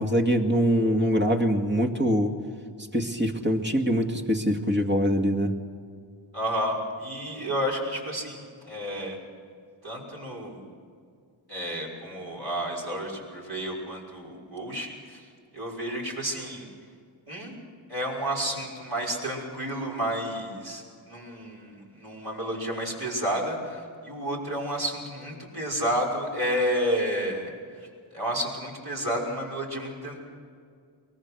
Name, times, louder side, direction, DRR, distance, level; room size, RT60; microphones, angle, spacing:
voice 1, 0.0-2.3 2.9-5.5, equal, 20° right, 3 dB, 2.2 m, -23 dB
voice 2, 6.3-9.2 9.8-10.7 11.5-15.2 15.5-16.7 17.3-17.5 17.9-27.5 27.8-27.9 28.1-30.2, equal, 50° right, -3 dB, 5.9 m, -31 dB
23.5 x 19.5 x 6.4 m, 2.2 s
wide cardioid pair, 45°, 49 cm